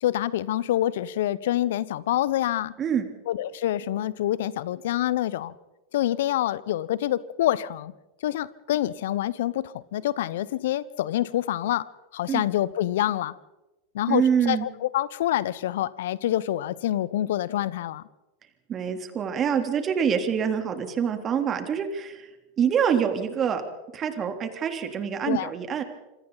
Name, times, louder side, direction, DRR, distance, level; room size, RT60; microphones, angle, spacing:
voice 1, 0.0-2.7 3.3-5.5 5.9-7.9 8.2-11.9 12.1-13.3 13.9-18.0 25.3-25.5, left 13 dB, 70° left, 19 dB, 0.9 m, -26 dB
voice 2, 14.1-14.7 18.7-22.3 22.6-23.6 23.9-25.8, right 7 dB, 35° right, 6 dB, 3.4 m, -25 dB
27.0 x 25.5 x 4.1 m, 1.0 s
hypercardioid pair, 90°, 0 cm